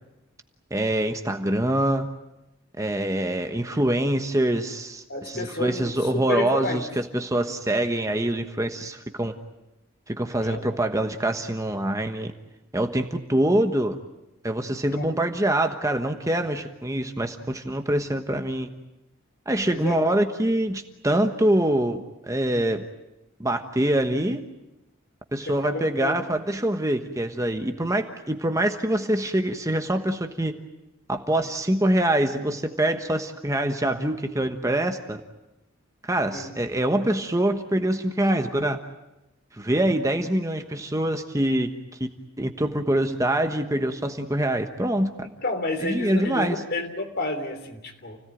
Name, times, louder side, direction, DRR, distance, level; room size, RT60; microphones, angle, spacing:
voice 1, 0.7-2.1 2.8-9.3 10.1-12.3 12.7-14.0 14.4-18.7 19.5-22.8 23.4-24.4 25.3-30.6 31.1-35.2 36.0-38.8 39.5-41.7 42.0-42.1 42.4-45.3 45.8-46.6, right 1 dB, 15° right, 6 dB, 1.2 m, -25 dB
voice 2, 5.1-6.8 10.3-10.8 14.9-15.2 19.7-20.1 25.4-26.2 36.3-36.6 45.2-48.2, left 2 dB, 50° left, 5 dB, 3.4 m, -31 dB
29.5 x 17.5 x 9.2 m, 0.96 s
head